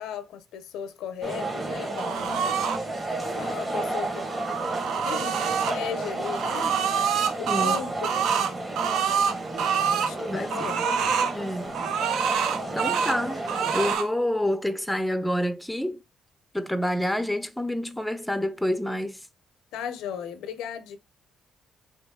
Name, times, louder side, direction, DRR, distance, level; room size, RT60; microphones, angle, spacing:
voice 1, 0.0-2.6 3.2-4.3 5.0-7.0 7.4-8.2 9.9-10.9 19.7-21.0, left 8 dB, 90° left, 0.5 m, -36 dB
sound 1, 1.2-14.0, right 2 dB, 25° right, 1.3 m, -32 dB
sound 2, 2.0-2.8 4.2-5.8 6.3-10.1 10.5-11.3 11.7-13.2 13.5-14.1, right 7 dB, 85° right, 0.4 m, -26 dB
voice 2, 7.5-7.8 10.3-10.7 11.3-11.7 12.7-13.4 13.7-16.0 16.5-19.2, left 1 dB, 5° left, 0.5 m, -28 dB
2.9 x 2.8 x 3.5 m
cardioid pair, 90°, 0 cm